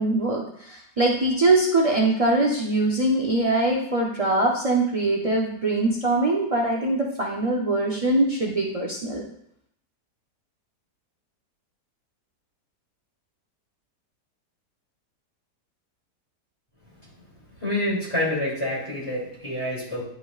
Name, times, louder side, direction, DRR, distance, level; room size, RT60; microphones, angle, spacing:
voice 1, 0.0-9.2, right 2 dB, 55° right, -1 dB, 0.3 m, -22 dB
voice 2, 17.5-20.0, left 1 dB, 20° left, -6 dB, 2.5 m, -27 dB
10.0 x 5.1 x 2.4 m, 0.71 s
omnidirectional pair, 1.7 m